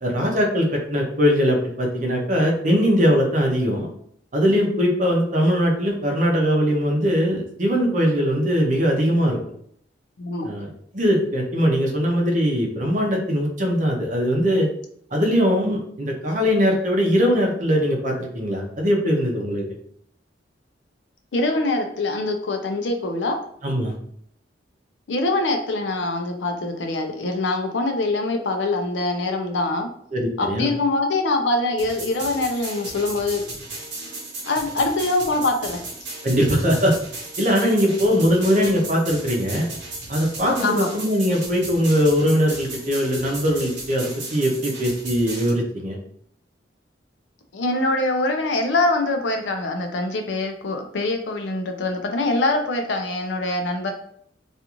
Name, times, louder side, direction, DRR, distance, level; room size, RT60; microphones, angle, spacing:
voice 1, 0.0-3.9 4.3-9.4 10.4-14.7 15.1-19.6 23.6-24.0 30.1-30.7 36.2-37.0 37.4-39.7 40.1-46.0, equal, 45° right, 1 dB, 0.6 m, -21 dB
voice 2, 21.3-23.4 25.1-29.9 30.4-33.4 34.5-35.8 40.6-40.9 47.5-53.9, left 2 dB, 75° left, 4 dB, 0.5 m, -24 dB
sound 1, 31.8-45.5, right 2 dB, 70° right, 0.9 m, -35 dB
2.5 x 2.4 x 2.9 m, 0.66 s
head